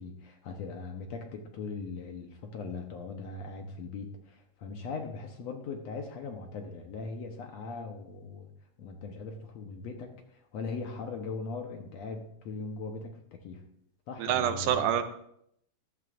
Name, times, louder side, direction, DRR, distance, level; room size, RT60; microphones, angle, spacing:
voice 1, 0.0-8.5 8.8-13.6 14.1-14.9, left 4 dB, 65° left, 3 dB, 1.9 m, -40 dB
voice 2, 14.2-15.0, right 10 dB, 75° right, 9 dB, 2.1 m, -26 dB
14.5 x 12.0 x 2.5 m, 0.72 s
omnidirectional pair, 3.8 m